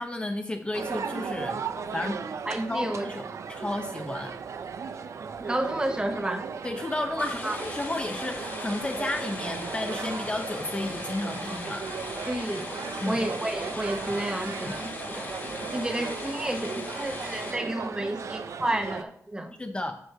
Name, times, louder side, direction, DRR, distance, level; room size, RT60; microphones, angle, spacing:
voice 1, 0.0-1.6 1.9-2.2 2.7-4.3 6.6-11.8 13.0-13.2 14.7-14.8 19.6-19.9, left 2 dB, 20° left, 5 dB, 0.6 m, -32 dB
sound 1, 0.7-19.0, right 6 dB, 65° right, 0.5 m, -37 dB
voice 2, 2.5-3.1 5.4-6.4 7.2-7.6 12.3-12.7 13.1-19.5, right 1 dB, 15° right, 6 dB, 0.9 m, -31 dB
sound 2, 7.2-17.5, left 2 dB, 40° left, 1.8 m, -38 dB
8.8 x 3.2 x 6.6 m, 0.70 s
wide cardioid pair, 130°, 6 cm